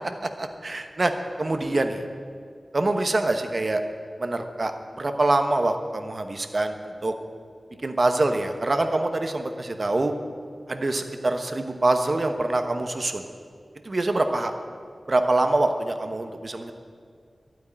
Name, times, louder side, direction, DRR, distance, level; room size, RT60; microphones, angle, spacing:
voice 1, 0.2-1.1 1.4-2.0 2.7-3.8 4.2-4.7 5.0-7.1 7.8-10.1 10.7-13.2 13.8-14.5 15.1-16.7, right 2 dB, 50° right, 7 dB, 1.1 m, -25 dB
11.5 x 9.4 x 9.9 m, 2.1 s
wide cardioid pair, 85°, 0 cm